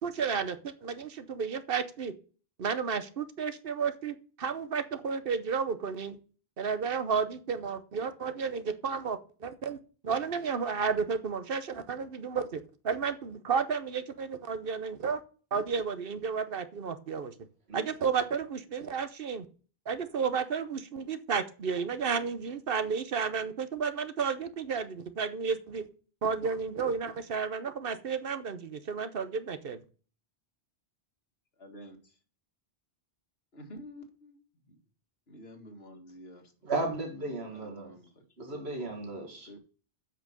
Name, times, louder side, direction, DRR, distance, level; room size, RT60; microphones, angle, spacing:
voice 1, 0.0-2.1 2.6-6.2 6.6-9.8 10.0-15.2 15.5-17.3 17.7-19.5 19.9-25.8 26.2-29.8, right 6 dB, 65° right, 1.1 m, -32 dB
voice 2, 31.6-32.0 33.5-34.4 34.7-34.8 35.3-36.5 37.5-38.5 39.5-39.6, equal, 70° left, 2.1 m, -49 dB
voice 3, 36.6-37.9 38.4-39.6, right 2 dB, 85° right, 2.4 m, -35 dB
7.6 x 5.9 x 6.7 m
omnidirectional pair, 1.1 m